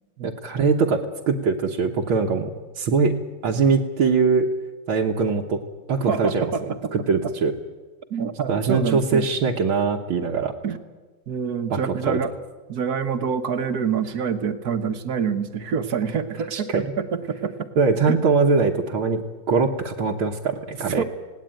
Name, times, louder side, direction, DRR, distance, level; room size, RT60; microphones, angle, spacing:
voice 1, 0.2-2.5 2.8-4.5 4.9-5.6 5.9-6.5 6.9-7.5 8.5-10.5 11.7-12.2 16.5-16.8 17.8-19.2 19.5-21.0, right 4 dB, 75° right, -1 dB, 2.0 m, -22 dB
voice 2, 6.1-6.9 8.1-9.3 10.6-10.8 11.3-12.3 12.7-16.7 17.0-17.7 18.0-18.2 21.0-21.1, right 6 dB, 55° right, 9 dB, 1.5 m, -26 dB
19.0 x 18.0 x 9.1 m, 1.3 s
omnidirectional pair, 2.3 m